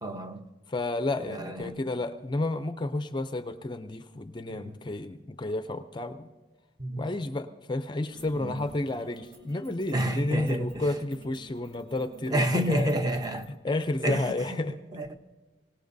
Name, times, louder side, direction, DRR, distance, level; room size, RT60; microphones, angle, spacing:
voice 1, 0.0-0.5 1.3-1.8 4.5-4.8 6.8-7.0 8.3-8.7 9.9-10.9 12.3-13.5 14.0-14.6 14.9-15.2, right 1 dB, 20° right, 0.8 m, -29 dB
voice 2, 0.7-6.3 7.0-13.2 13.6-14.7, left 2 dB, 25° left, 0.4 m, -31 dB
sound 1, 8.1-13.5, right 3 dB, 70° right, 1.8 m, -52 dB
24.5 x 18.0 x 2.7 m
head